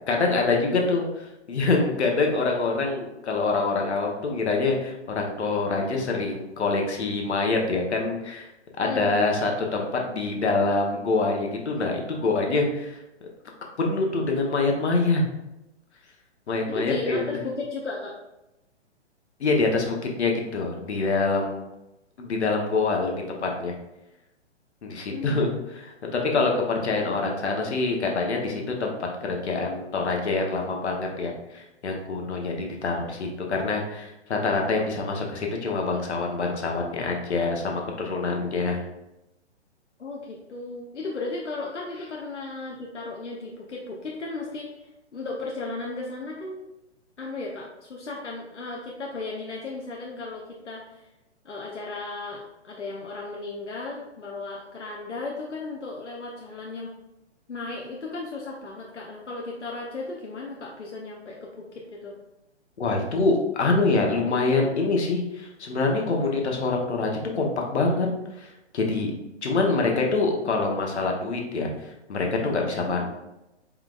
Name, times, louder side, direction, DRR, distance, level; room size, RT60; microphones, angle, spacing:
voice 1, 0.1-8.5 8.8-13.3 13.8-15.2 16.5-17.4 19.4-21.6 22.2-23.2 23.4-23.7 24.8-28.9 29.2-38.8 62.8-68.1 68.4-69.1 69.4-73.1, left 3 dB, 70° left, 1 dB, 1.1 m, -25 dB
voice 2, 8.8-9.2 16.7-18.1 25.1-25.6 40.0-44.7 45.1-46.6 47.2-51.1 51.4-56.9 57.5-62.2 72.7-73.0, left 3 dB, 90° left, -2 dB, 0.8 m, -35 dB
4.6 x 3.8 x 2.4 m, 0.92 s
figure-of-eight pair, 130°, 35 cm